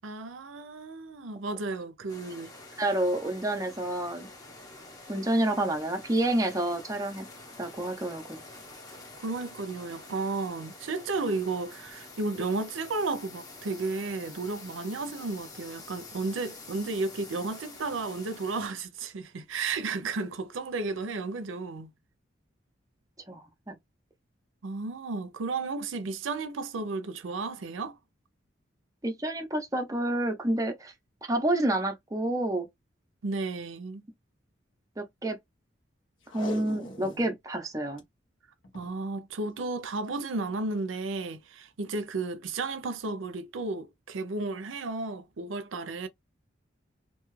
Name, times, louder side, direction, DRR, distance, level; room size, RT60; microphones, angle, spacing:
voice 1, 0.0-2.5 8.9-21.9 24.6-28.0 33.2-34.0 38.7-46.1, right 3 dB, 85° right, 0.5 m, -33 dB
sound 1, 2.1-18.7, left 2 dB, 20° left, 0.7 m, -47 dB
voice 2, 2.8-4.3 5.1-7.3 7.6-8.4 23.3-23.8 29.0-30.9 31.3-32.7 35.0-35.4 36.3-38.0, right 1 dB, 15° right, 0.5 m, -29 dB
Packing tape duct tape, 36.2-37.3 37.7-37.8 38.0-38.1 38.6-39.0 40.0-40.2 40.8-40.9, left 1 dB, 85° left, 1.0 m, -40 dB
2.6 x 2.3 x 3.1 m
head